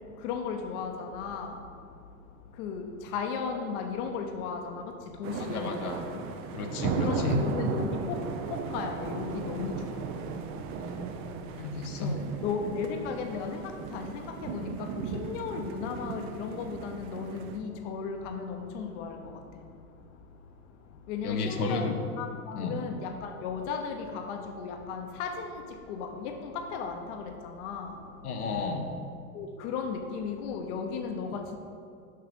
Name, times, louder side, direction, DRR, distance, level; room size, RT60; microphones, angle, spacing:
voice 1, 0.2-1.5 2.6-2.8 3.1-4.8 5.2-6.2 7.0-8.2 8.5-9.8 12.0-14.7 15.1-19.2 21.1-25.6 25.9-27.9 29.3-31.6, left 5 dB, 55° left, 5 dB, 0.9 m, -35 dB
sound 1, 5.2-17.6, right 6 dB, 30° right, 0.5 m, -36 dB
voice 2, 5.5-6.0 6.5-7.4 10.8-11.1 11.5-12.2 21.2-22.0 22.6-22.8 28.2-28.9, left 3 dB, 85° left, 3 dB, 1.0 m, -32 dB
6.6 x 5.7 x 5.2 m, 2.4 s
hypercardioid pair, 110°, 43 cm